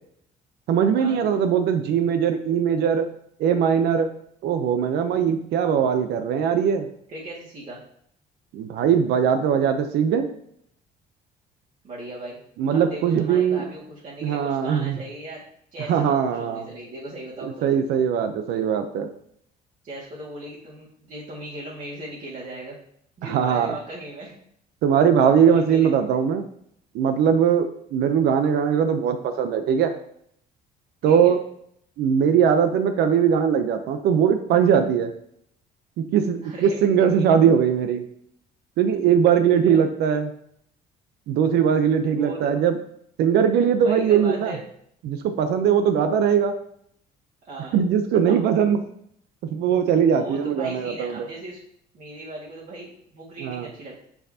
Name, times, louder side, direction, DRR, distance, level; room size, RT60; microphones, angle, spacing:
voice 1, 0.7-3.1 3.4-4.1 4.4-6.9 8.5-10.3 12.6-13.7 14.2-15.0 15.9-16.7 17.4-19.1 23.2-23.8 24.8-26.4 26.9-29.9 31.0-31.4 32.0-35.1 36.0-38.0 38.8-40.3 41.3-42.8 43.2-44.5 45.0-46.5 47.7-48.8 49.5-51.3 53.4-53.7, right 7 dB, 75° right, 7 dB, 0.6 m, -20 dB
voice 2, 7.1-7.8 11.8-12.4 12.7-15.4 15.7-17.7 19.8-22.8 23.2-24.4 25.2-25.9 31.0-31.3 36.4-36.8 39.6-39.8 42.1-42.6 43.8-44.6 47.5-47.7 48.3-48.5 50.1-51.6 51.9-54.0, right 1 dB, 50° right, -6 dB, 2.0 m, -38 dB
6.4 x 5.7 x 2.8 m, 0.69 s
cardioid pair, 110°, 17 cm